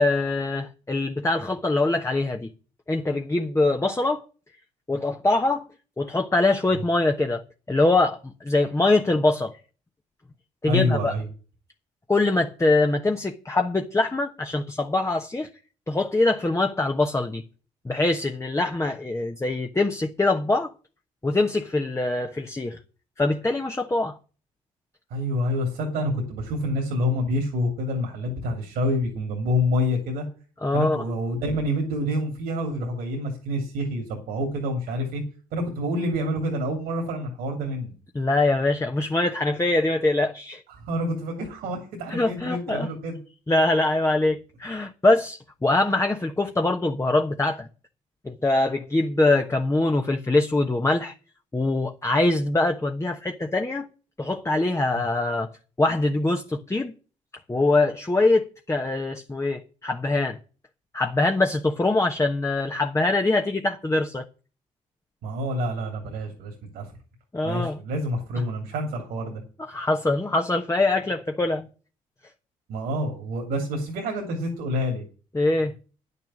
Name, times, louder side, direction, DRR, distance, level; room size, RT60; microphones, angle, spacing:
voice 1, 0.0-2.5 2.9-4.2 4.9-5.7 6.0-7.4 7.7-9.6 10.6-11.1 12.1-15.5 15.9-17.4 17.8-20.7 21.2-22.8 23.2-24.2 30.6-31.0 38.1-40.6 42.1-42.9 43.5-47.7 48.2-51.1 51.5-53.9 54.2-55.5 55.8-56.9 57.5-60.4 60.9-64.2 67.3-67.8 69.7-71.7 75.3-75.7, left 2 dB, 20° left, 1.2 m, -23 dB
voice 2, 10.6-11.3 25.1-30.2 30.7-35.2 35.5-37.9 40.7-43.2 54.9-55.1 65.2-66.9 67.4-69.4 72.7-75.0, left 1 dB, 70° right, 2.8 m, -27 dB
10.0 x 6.8 x 7.3 m
hypercardioid pair, 45°, 16 cm